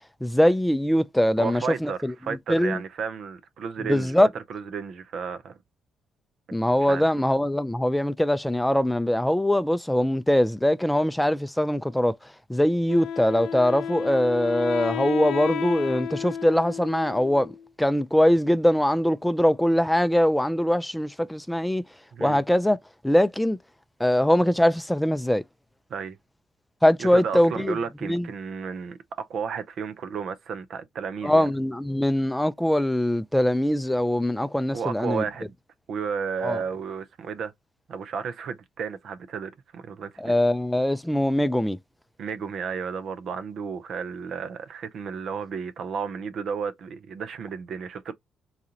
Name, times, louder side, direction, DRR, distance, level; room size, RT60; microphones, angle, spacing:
voice 1, 0.2-2.1 2.5-2.8 3.9-4.3 6.5-17.5 17.8-21.8 22.2-22.8 23.0-23.6 24.0-25.4 26.8-27.8 28.0-28.3 31.2-35.2 36.4-36.6 40.2-41.8, left 1 dB, 5° left, 0.4 m, -22 dB
voice 2, 1.4-5.6 6.9-7.0 22.1-22.4 25.9-26.2 27.0-31.5 34.7-35.5 35.9-37.5 37.9-40.3 42.2-48.1, right 6 dB, 65° right, 0.6 m, -33 dB
Wind instrument woodwind instrument, 12.9-17.7, left 8 dB, 75° left, 0.4 m, -32 dB
4.1 x 2.4 x 2.8 m
hypercardioid pair, 55°, 0 cm